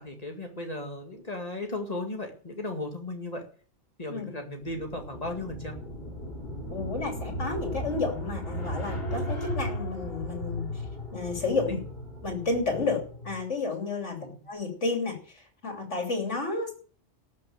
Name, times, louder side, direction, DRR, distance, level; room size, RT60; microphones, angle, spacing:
voice 1, 0.0-3.4 4.0-5.8 11.7-11.8 14.2-14.4, left 2 dB, 35° left, 3 dB, 2.2 m, -36 dB
sound 1, 4.6-13.4, equal, 55° left, 3.3 m, -36 dB
voice 2, 6.7-10.7 11.1-11.8 12.2-14.2 14.5-15.2 15.6-16.7, left 3 dB, 90° left, 2 dB, 3.5 m, -31 dB
13.0 x 6.3 x 8.7 m, 0.43 s
omnidirectional pair, 1.2 m